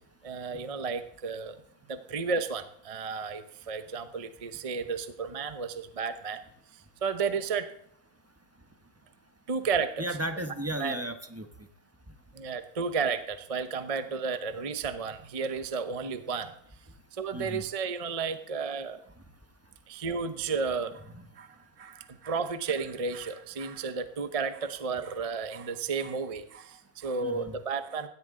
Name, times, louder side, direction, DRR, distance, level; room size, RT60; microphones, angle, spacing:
voice 1, 0.2-1.6 1.9-6.4 7.0-7.7 9.5-10.0 10.8-11.0 12.3-16.5 17.1-19.0 19.9-21.0 21.4-21.5 21.8-28.1, right 5 dB, 30° right, 10 dB, 0.7 m, -32 dB
voice 2, 10.0-11.5 17.3-17.7 27.2-27.6, right 1 dB, 10° right, 7 dB, 1.0 m, -34 dB
17.0 x 12.5 x 3.8 m, 0.72 s
omnidirectional pair, 1.6 m